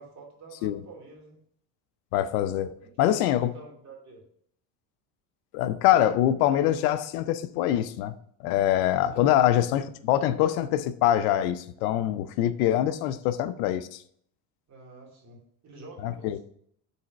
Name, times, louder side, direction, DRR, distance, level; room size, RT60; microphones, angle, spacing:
voice 1, 0.0-1.4 2.8-4.2 9.1-9.3 14.7-16.4, right 3 dB, 35° right, 2.5 m, -48 dB
voice 2, 2.1-3.5 5.5-8.1 8.4-14.0 16.0-16.4, left 12 dB, 85° left, 0.7 m, -24 dB
5.6 x 4.1 x 5.7 m
supercardioid pair, 120°, 45 cm